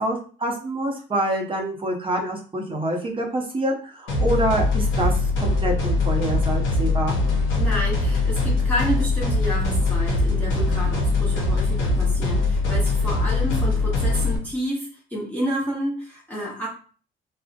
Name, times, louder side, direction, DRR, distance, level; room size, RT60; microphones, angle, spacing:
voice 1, 0.0-5.1 5.4-7.2, right 1 dB, 25° right, 0 dB, 0.6 m, -26 dB
sound 1, 4.1-14.4, left 3 dB, 80° left, 0.7 m, -22 dB
voice 2, 7.6-16.7, equal, 10° left, -5 dB, 0.7 m, -30 dB
2.5 x 2.0 x 2.4 m, 0.40 s
cardioid pair, 90°, 20 cm